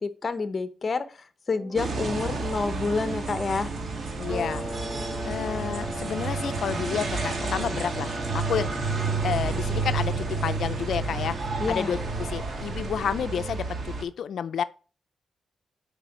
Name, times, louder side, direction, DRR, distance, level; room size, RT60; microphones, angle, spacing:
voice 1, 0.0-3.8 11.6-11.9, left 4 dB, 35° left, 0.9 m, -29 dB
sound 1, 1.5-13.6, right 4 dB, 35° right, 0.9 m, -44 dB
sound 2, 1.8-14.0, right 4 dB, 55° right, 1.4 m, -31 dB
voice 2, 4.2-4.6 5.2-8.9 9.2-10.1 10.4-12.0 12.3-14.6, left 8 dB, 75° left, 0.4 m, -30 dB
sound 3, 4.3-12.7, left 1 dB, ahead, 0.8 m, -38 dB
6.8 x 5.2 x 6.1 m
wide cardioid pair, 130°, 0 cm